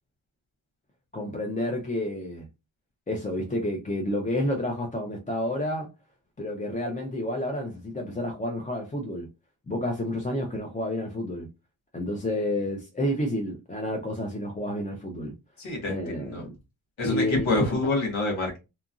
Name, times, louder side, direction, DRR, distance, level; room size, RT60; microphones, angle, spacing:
voice 1, 1.1-2.5 3.1-5.9 6.4-9.3 9.7-11.5 11.9-15.3 15.8-16.5 17.0-17.5, left 1 dB, 20° left, 0.5 m, -30 dB
voice 2, 15.6-16.4 17.0-18.6, left 2 dB, 90° left, 1.3 m, -27 dB
2.9 x 2.5 x 2.4 m
wide cardioid pair, 85°, 46 cm